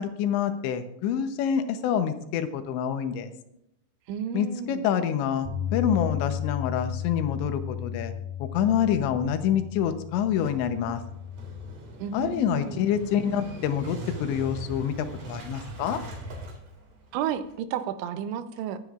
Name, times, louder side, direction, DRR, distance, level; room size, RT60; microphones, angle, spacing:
voice 1, 0.0-3.3 4.3-8.1 8.4-11.0 12.1-16.0, left 8 dB, 85° left, 8 dB, 3.2 m, -27 dB
voice 2, 4.1-4.8 12.0-12.8 17.1-18.8, right 8 dB, 90° right, 10 dB, 3.1 m, -32 dB
Bass guitar, 5.5-11.7, left 10 dB, 60° right, 4.1 m, -34 dB
Motorcycle / Engine starting, 10.3-17.5, right 1 dB, 45° right, 2.9 m, -41 dB
23.0 x 9.7 x 2.4 m, 0.80 s
omnidirectional pair, 5.1 m